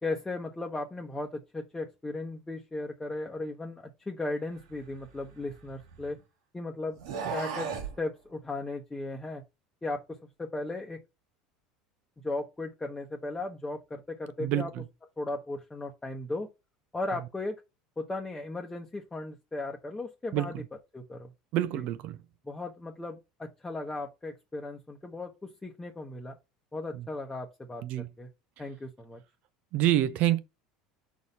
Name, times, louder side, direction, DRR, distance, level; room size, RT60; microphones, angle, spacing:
voice 1, 0.0-6.2 6.5-7.0 7.3-7.7 8.0-9.4 9.8-11.0 12.2-14.7 15.2-16.5 16.9-17.6 18.0-20.5 20.9-21.3 21.7-21.8 22.4-26.4 26.7-28.3 28.6-29.2, left 2 dB, 15° left, 1.1 m, -36 dB
sound 1, 4.7-6.2 6.9-8.0, right 6 dB, 80° right, 1.7 m, -37 dB
voice 2, 14.4-14.8 20.3-20.6 21.5-22.2 26.9-27.1 27.8-28.1 29.7-30.4, right 13 dB, 60° right, 0.8 m, -27 dB
4.8 x 4.0 x 5.4 m
supercardioid pair, 95°, 3 cm